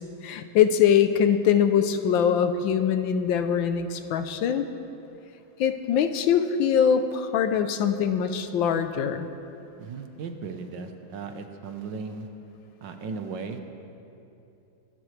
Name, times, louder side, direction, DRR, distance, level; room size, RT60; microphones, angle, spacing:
voice 1, 0.2-4.6 5.6-9.3, left 8 dB, 75° left, 9 dB, 1.4 m, -23 dB
voice 2, 9.8-12.3 12.8-13.6, right 4 dB, 70° right, 6 dB, 1.5 m, -36 dB
24.5 x 12.5 x 3.2 m, 2.7 s
omnidirectional pair, 2.2 m